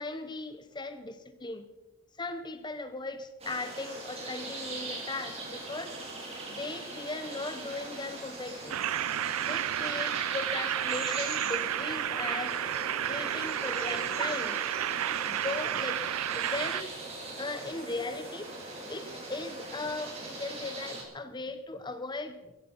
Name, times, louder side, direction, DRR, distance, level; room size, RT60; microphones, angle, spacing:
voice 1, 0.0-1.7 2.2-6.0 6.5-8.8 9.4-12.7 13.1-14.6 15.2-17.0 17.4-18.5 18.9-22.5, left 2 dB, 20° left, 10 dB, 0.8 m, -38 dB
sound 1, 3.4-21.0, right 2 dB, 30° right, 4.6 m, -41 dB
sound 2, 8.7-16.8, right 11 dB, 85° right, 0.5 m, -31 dB
15.5 x 15.0 x 5.6 m, 1.1 s
head